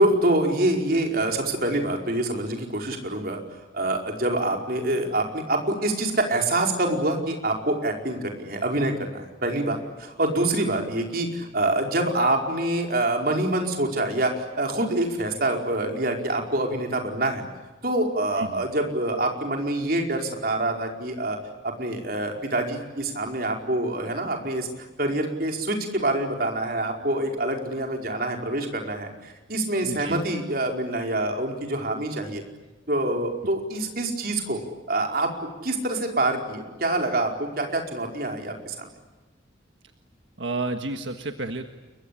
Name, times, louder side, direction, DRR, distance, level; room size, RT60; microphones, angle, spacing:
voice 1, 0.0-3.4 3.7-17.4 17.8-21.4 21.6-24.7 25.0-32.4 32.9-34.6 34.9-35.3 35.6-38.7, right 1 dB, 50° right, 2 dB, 4.9 m, -26 dB
voice 2, 18.4-18.7 29.8-30.2 40.4-41.7, right 2 dB, 85° right, 6 dB, 1.6 m, -31 dB
29.5 x 23.0 x 8.5 m, 1.2 s
head